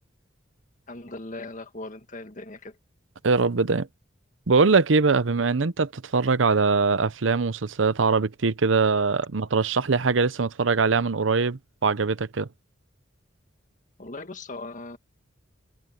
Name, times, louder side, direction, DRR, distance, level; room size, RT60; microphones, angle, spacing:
voice 1, 0.9-2.8 14.0-15.0, left 2 dB, 45° left, 1.8 m, -39 dB
voice 2, 3.2-3.9 4.5-12.5, right 4 dB, 85° right, 0.8 m, -22 dB
head